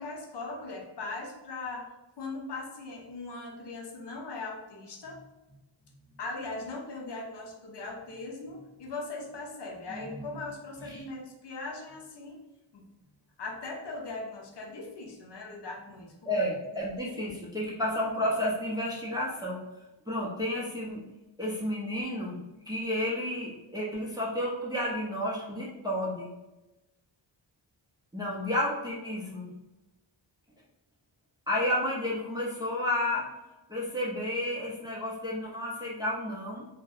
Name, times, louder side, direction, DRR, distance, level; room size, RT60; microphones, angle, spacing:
voice 1, 0.0-1.9 2.2-5.2 6.2-12.4 12.7-12.8 13.4-16.4 17.2-17.3, left 3 dB, 60° left, 0 dB, 0.6 m, -39 dB
voice 2, 9.9-10.4 10.8-11.0 16.2-19.6 20.1-21.0 21.4-26.3 28.1-29.5 31.5-33.3 33.7-36.7, left 1 dB, 10° right, -5 dB, 0.4 m, -31 dB
2.6 x 2.0 x 2.3 m, 1.0 s
wide cardioid pair, 120°, 47 cm